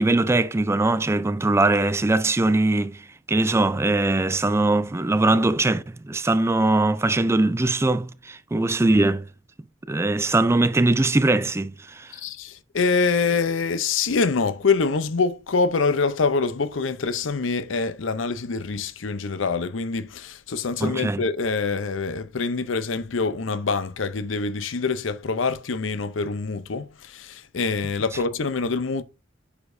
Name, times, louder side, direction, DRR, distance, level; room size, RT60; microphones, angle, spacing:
voice 1, 0.0-9.3 9.9-12.1 20.8-21.2, right 2 dB, 15° right, 0.4 m, -21 dB
voice 2, 12.1-29.0, left 4 dB, 85° left, 0.6 m, -25 dB
8.1 x 5.0 x 2.6 m
head